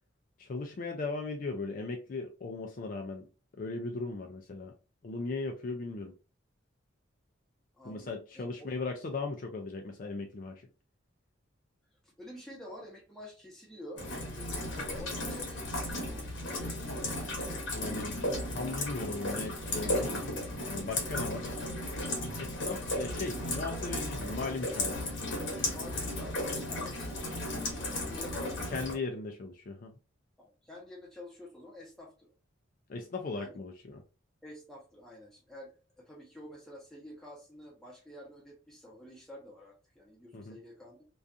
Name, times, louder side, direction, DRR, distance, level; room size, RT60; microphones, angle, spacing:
voice 1, 0.4-3.3 3.6-4.7 5.0-6.1 7.8-10.7 17.7-18.2 18.5-20.2 20.7-22.1 22.4-25.0 28.7-29.9 32.9-34.0 40.3-40.6, left 3 dB, 40° left, 0.3 m, -38 dB
voice 2, 7.7-8.7 12.0-17.1 21.0-21.7 23.7-23.9 25.7-28.8 30.4-32.3 33.3-33.5 34.4-41.1, left 1 dB, ahead, 0.8 m, -49 dB
Rain, 14.0-28.9, left 1 dB, 65° left, 0.8 m, -35 dB
2.4 x 2.3 x 2.5 m
head